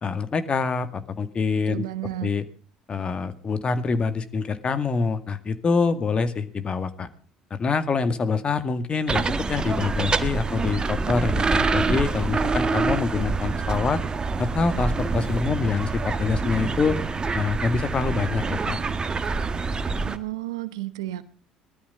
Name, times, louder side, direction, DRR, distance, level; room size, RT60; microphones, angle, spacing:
voice 1, 0.0-1.8 2.2-2.4 2.9-7.1 7.5-14.0 14.4-17.0 17.3-18.8, left 4 dB, 35° left, 11 dB, 2.1 m, -25 dB
voice 2, 1.7-2.3 20.0-21.3, right 15 dB, 80° right, 15 dB, 1.1 m, -32 dB
sound 1, 9.1-20.2, right 4 dB, 30° right, 1.6 m, -26 dB
19.5 x 13.0 x 5.6 m, 0.42 s
hypercardioid pair, 60°, 3 cm